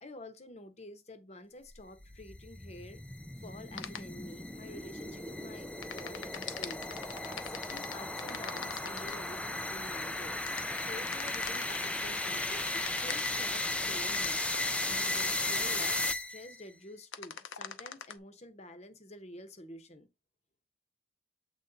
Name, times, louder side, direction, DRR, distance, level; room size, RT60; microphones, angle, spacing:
voice 1, 0.0-3.0 3.4-6.8 7.2-10.4 10.8-14.4 14.8-20.1, left 1 dB, 35° left, 0.9 m, -49 dB
sound 1, 1.8-16.6, left 2 dB, 5° left, 0.3 m, -35 dB
sound 2, 3.8-4.0 5.8-9.2 10.5-13.4 14.1-16.1 17.1-18.1, left 8 dB, 75° left, 0.7 m, -42 dB
7.9 x 3.1 x 3.9 m
head